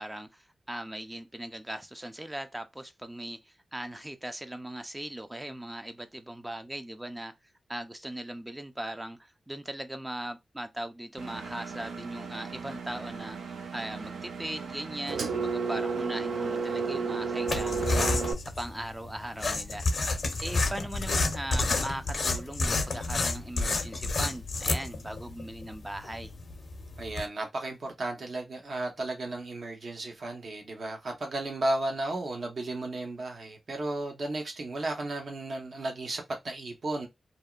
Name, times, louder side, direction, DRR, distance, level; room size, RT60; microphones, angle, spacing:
voice 1, 0.0-7.3 7.7-18.3 18.6-19.8 20.4-26.3, right 1 dB, 15° right, 0.4 m, -39 dB
Engine, 11.2-18.3, right 4 dB, 90° right, 0.4 m, -33 dB
sound 1, 17.5-27.2, left 3 dB, 65° left, 0.6 m, -30 dB
voice 2, 27.0-37.1, right 2 dB, 65° right, 1.0 m, -34 dB
2.6 x 2.1 x 2.3 m
cardioid pair, 60°, 0 cm